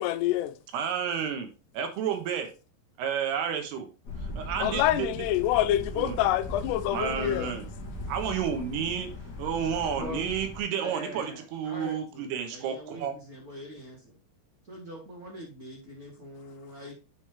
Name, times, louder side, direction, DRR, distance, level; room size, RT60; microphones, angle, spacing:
voice 1, 0.0-0.5 4.6-7.5, left 13 dB, 85° left, 2.8 m, -26 dB
voice 2, 0.7-1.5 1.7-2.5 3.0-3.9 4.4-5.1 5.9-6.2 6.9-7.7 8.1-9.1 9.4-13.1, right 7 dB, 80° right, 3.2 m, -31 dB
sound 1, 4.0-10.6, left 1 dB, 60° left, 1.0 m, -39 dB
voice 3, 10.8-14.2 14.7-16.9, equal, 40° right, 1.2 m, -43 dB
9.3 x 5.2 x 3.3 m
omnidirectional pair, 4.7 m